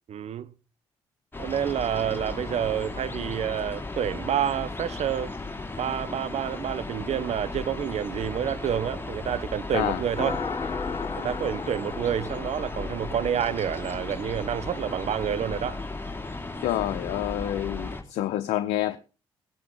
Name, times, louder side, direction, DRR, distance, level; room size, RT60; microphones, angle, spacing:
voice 1, 0.1-0.5 1.4-5.3 5.8-10.4 11.2-15.8, right 9 dB, 60° right, 1.0 m, -28 dB
sound 1, 1.3-18.0, left 3 dB, 15° left, 2.8 m, -36 dB
sound 2, 10.2-13.6, left 5 dB, 40° left, 3.3 m, -35 dB
voice 2, 16.6-19.0, left 13 dB, 70° left, 0.7 m, -28 dB
18.5 x 9.3 x 3.8 m
hypercardioid pair, 40°, 12 cm